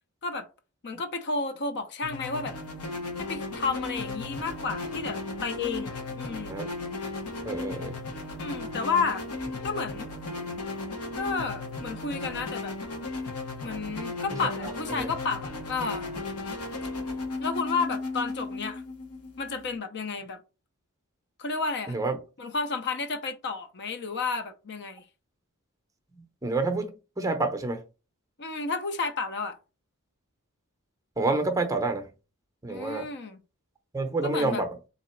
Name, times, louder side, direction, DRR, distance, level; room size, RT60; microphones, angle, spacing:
voice 1, 0.8-2.6 3.2-6.5 8.4-9.2 9.6-10.1 11.2-12.7 13.6-16.1 17.4-18.8 19.4-20.4 21.4-22.0 22.4-25.0 28.4-29.6 32.7-33.4 34.2-34.6, left 4 dB, 50° left, 0.6 m, -31 dB
sound 1, 2.0-19.8, left 2 dB, 80° left, 1.2 m, -35 dB
voice 2, 7.4-8.0 14.4-14.7 15.0-15.1 21.9-22.2 26.4-27.8 31.2-32.0 32.6-33.0 33.9-34.7, right 3 dB, 15° right, 0.6 m, -28 dB
3.8 x 2.9 x 4.4 m
head